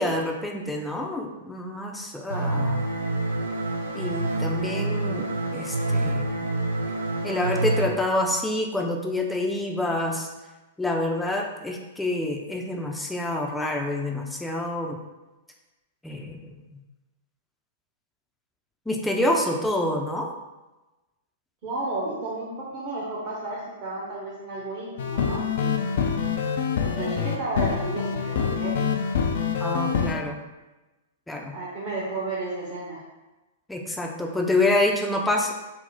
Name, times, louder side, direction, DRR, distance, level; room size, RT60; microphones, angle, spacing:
voice 1, 0.0-2.9 3.9-6.4 7.2-10.3 10.8-15.0 16.0-16.4 16.7-16.8 18.9-20.3 29.6-30.4 31.3-31.6 33.7-35.5, left 1 dB, 5° left, 1 dB, 0.5 m, -27 dB
sound 1, 2.3-7.9, right 2 dB, 80° right, 0.5 m, -27 dB
voice 2, 21.6-25.8 26.8-28.8 31.5-33.0, right 2 dB, 40° right, -6 dB, 1.0 m, -32 dB
sound 2, 25.0-30.2, left 6 dB, 60° left, 0.4 m, -26 dB
4.0 x 2.1 x 4.0 m, 1.1 s
figure-of-eight pair, 105°, 0 cm